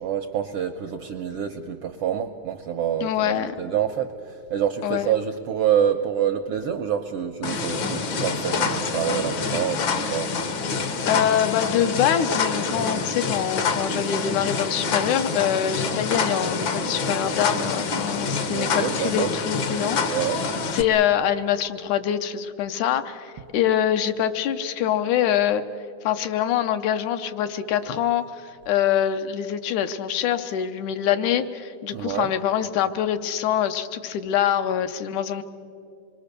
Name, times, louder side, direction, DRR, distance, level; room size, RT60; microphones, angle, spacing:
voice 1, 0.0-10.3 18.5-19.3 20.1-20.4 31.9-32.3, right 9 dB, 80° right, 5 dB, 1.3 m, -27 dB
voice 2, 3.0-3.5 4.8-5.1 11.1-20.4 20.7-25.6 26.0-35.4, left 10 dB, 80° left, 9 dB, 2.2 m, -24 dB
sound 1, 7.4-20.8, left 4 dB, 65° left, 1.2 m, -26 dB
26.5 x 22.0 x 6.7 m, 2.7 s
omnidirectional pair, 3.5 m